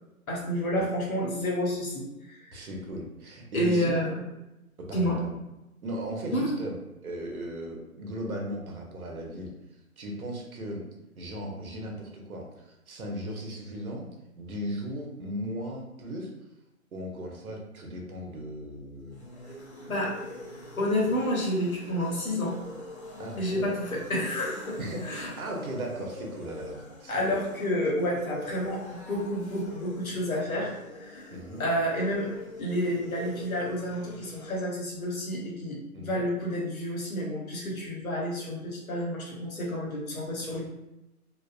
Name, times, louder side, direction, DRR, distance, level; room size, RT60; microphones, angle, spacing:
voice 1, 0.3-2.6 3.5-4.2 4.9-5.2 6.3-6.6 19.9-20.1 20.8-22.5 23.4-24.8 25.0-25.3 27.1-31.3 31.6-32.3 32.6-40.6, equal, 70° left, -2 dB, 1.1 m, -29 dB
voice 2, 2.5-4.1 4.8-5.4 5.8-6.8 7.0-9.5 10.0-10.8 11.2-14.1 14.4-16.3 16.9-19.2 23.2-23.7 24.8-27.4 31.3-31.7 35.9-36.2, equal, 75° right, 0 dB, 0.9 m, -37 dB
sound 1, 18.9-34.6, left 1 dB, 50° left, 0.6 m, -45 dB
2.5 x 2.3 x 2.4 m, 0.96 s
hypercardioid pair, 170°, 44 cm